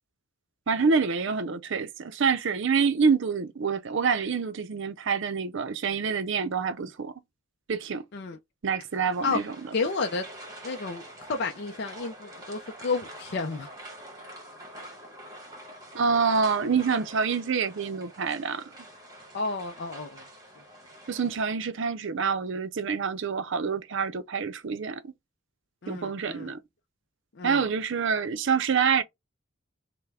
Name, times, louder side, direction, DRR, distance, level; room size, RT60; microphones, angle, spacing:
voice 1, 0.7-7.1 7.7-8.0 8.6-9.6 15.9-18.6 21.1-25.1 25.9-26.6 27.4-29.0, right 5 dB, 60° right, 0.5 m, -26 dB
sound 1, 9.1-21.4, right 1 dB, 20° right, 1.4 m, -46 dB
voice 2, 9.7-10.2 10.6-11.0 11.3-13.7 19.3-20.2 25.8-26.5 27.4-27.6, left 4 dB, 55° left, 0.5 m, -31 dB
5.5 x 2.2 x 3.4 m
head